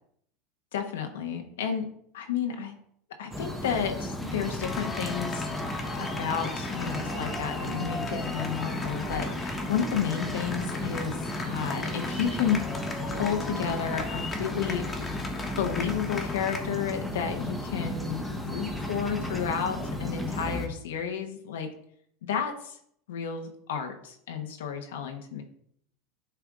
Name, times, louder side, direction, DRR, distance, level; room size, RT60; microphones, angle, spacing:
voice 1, 0.7-1.9 2.1-2.7 3.2-5.4 6.0-11.2 11.5-12.6 13.0-15.3 15.6-21.7 22.2-22.8 23.1-25.4, left 7 dB, 90° left, 4 dB, 1.0 m, -31 dB
sound 1, 3.3-20.7, left 1 dB, ahead, 1.1 m, -34 dB
sound 2, 4.6-16.6, left 3 dB, 20° left, 1.3 m, -38 dB
9.7 x 3.5 x 3.6 m, 0.67 s
supercardioid pair, 120°, 0 cm